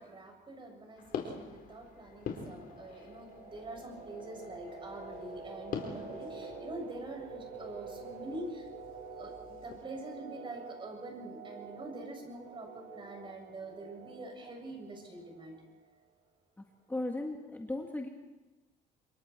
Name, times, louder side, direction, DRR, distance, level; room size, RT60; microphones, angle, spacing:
voice 1, 0.0-8.7 9.2-15.6, right 2 dB, 30° right, 2 dB, 7.3 m, -45 dB
sound 1, 0.9-9.8, left 6 dB, 60° left, 4.3 m, -46 dB
sound 2, 1.5-15.9, right 4 dB, 75° right, 7.7 m, -48 dB
voice 2, 16.9-18.1, left 2 dB, 10° left, 2 dB, 1.9 m, -36 dB
27.5 x 22.5 x 4.6 m, 1.1 s
cardioid pair, 110°, 17 cm